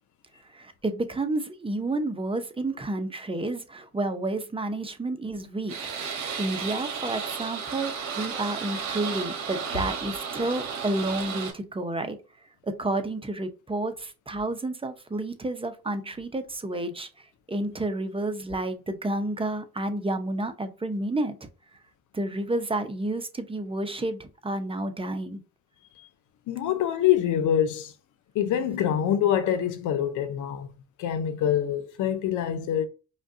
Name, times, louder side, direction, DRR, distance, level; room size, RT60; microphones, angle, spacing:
voice 1, 0.5-5.8 6.4-12.2 12.6-21.3 22.1-25.4, right 2 dB, 20° right, 0.7 m, -30 dB
sound 1, 5.7-11.5, right 6 dB, 65° right, 1.2 m, -33 dB
voice 2, 26.5-27.9 28.3-30.7 31.0-32.9, left 10 dB, 80° left, 0.7 m, -25 dB
5.1 x 2.3 x 2.7 m
cardioid pair, 90°, 30 cm